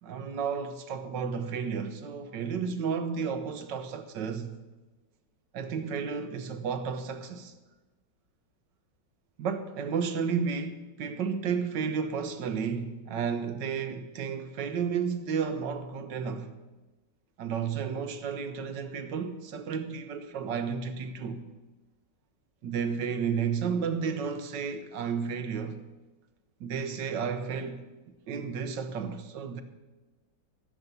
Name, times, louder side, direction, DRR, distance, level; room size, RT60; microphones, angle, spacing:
voice 1, 0.0-4.6 5.5-7.5 9.4-16.5 17.4-21.4 22.6-25.8 26.6-27.9 28.3-29.6, right 6 dB, 75° right, 1.6 m, -32 dB
15.0 x 7.4 x 6.8 m
omnidirectional pair, 2.0 m